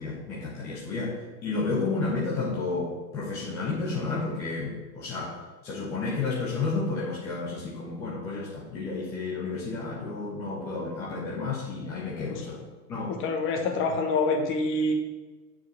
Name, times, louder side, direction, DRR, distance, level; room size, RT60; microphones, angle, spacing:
voice 1, 0.0-12.6 12.9-13.2, left 3 dB, 5° left, -6 dB, 0.4 m, -31 dB
voice 2, 13.1-14.9, left 3 dB, 25° left, 3 dB, 1.2 m, -26 dB
8.5 x 4.6 x 6.1 m, 1.2 s
figure-of-eight pair, 110°, 49 cm